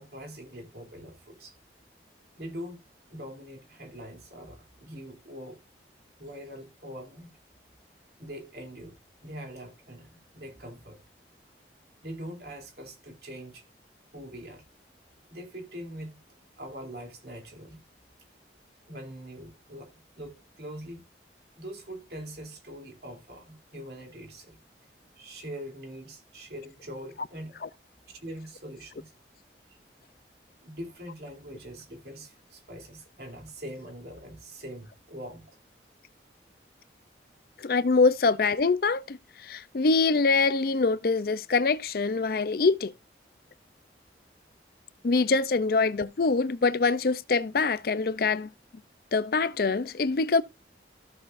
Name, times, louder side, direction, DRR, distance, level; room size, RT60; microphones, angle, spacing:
voice 1, 0.0-1.6 2.3-2.8 3.1-5.6 6.2-7.3 8.2-11.0 12.0-13.6 14.1-14.6 15.3-16.2 16.6-17.8 18.9-21.0 21.6-24.6 25.2-27.7 28.1-29.1 29.7-29.8 30.6-35.6 45.7-45.8, equal, 60° right, 3.0 m, -43 dB
voice 2, 37.6-42.9 45.0-48.5 49.1-50.4, left 4 dB, 55° left, 0.5 m, -24 dB
14.5 x 6.8 x 2.6 m
head